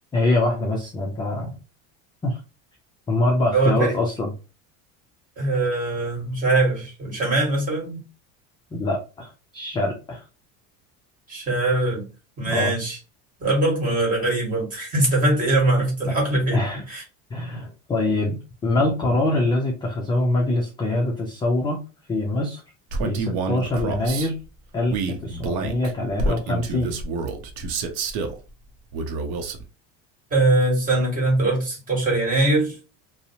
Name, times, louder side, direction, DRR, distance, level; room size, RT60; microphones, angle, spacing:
voice 1, 0.1-1.6 2.2-2.4 3.1-4.3 8.7-10.2 12.5-12.7 16.1-16.2 16.5-16.8 17.3-21.8 22.1-22.6 23.0-24.4 24.7-27.0, left 2 dB, 15° left, 0.3 m, -24 dB
voice 2, 3.5-4.0 5.4-8.0 11.3-12.0 12.4-13.0 13.4-16.6 16.9-17.0 30.3-32.7, right 2 dB, 25° right, 1.5 m, -22 dB
Male speech man speaking, 22.9-24.3 24.9-28.4 28.9-29.6, right 3 dB, 80° right, 0.7 m, -28 dB
2.6 x 2.0 x 2.7 m
cardioid pair, 145°, 33 cm